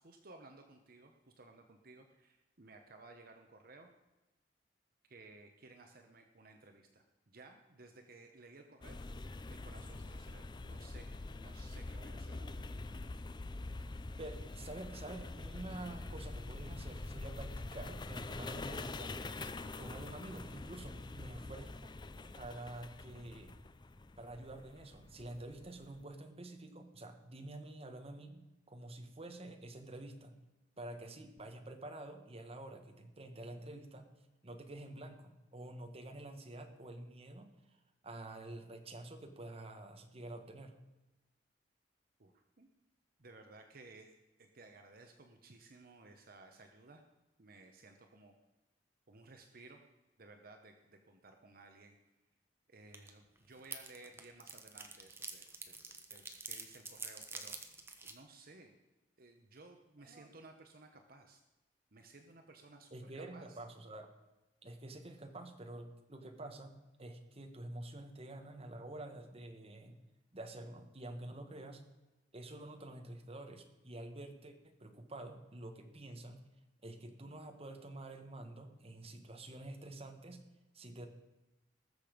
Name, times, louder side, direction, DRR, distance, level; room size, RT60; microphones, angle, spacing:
voice 1, 0.0-3.9 5.1-9.0 9.5-12.6 42.2-42.7 43.2-47.0 47.4-48.3 49.1-49.8 50.2-52.0 52.7-55.8 56.1-57.7 58.0-58.7 59.2-61.4 61.9-63.6, right 3 dB, 55° right, 4 dB, 1.0 m, -58 dB
sound 1, 8.8-26.0, left 2 dB, 25° left, 0.5 m, -45 dB
voice 2, 14.2-19.2 19.8-22.0 22.3-23.5 24.2-30.4 30.8-34.1 34.4-37.5 38.0-40.8 60.0-60.3 62.9-64.1 64.6-66.7 67.0-70.0 70.3-71.8 72.3-76.4 76.8-80.4 80.7-81.1, right 1 dB, 35° right, 5 dB, 1.4 m, -48 dB
sound 2, 52.9-53.1 53.4-58.1, right 3 dB, 15° right, 1.1 m, -46 dB
19.5 x 6.9 x 5.2 m, 1.0 s
head